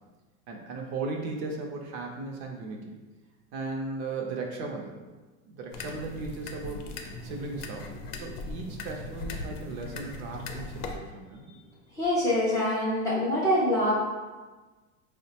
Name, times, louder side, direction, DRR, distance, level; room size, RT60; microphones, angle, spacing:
voice 1, 0.5-2.9 3.5-5.1 5.5-7.9 8.2-11.5, right 3 dB, 50° right, 1 dB, 0.6 m, -37 dB
sound 1, 5.7-11.0, left 3 dB, 90° left, 0.6 m, -39 dB
voice 2, 11.9-13.9, left 1 dB, 10° left, -9 dB, 0.5 m, -25 dB
4.4 x 2.1 x 2.8 m, 1.3 s
supercardioid pair, 150°, 44 cm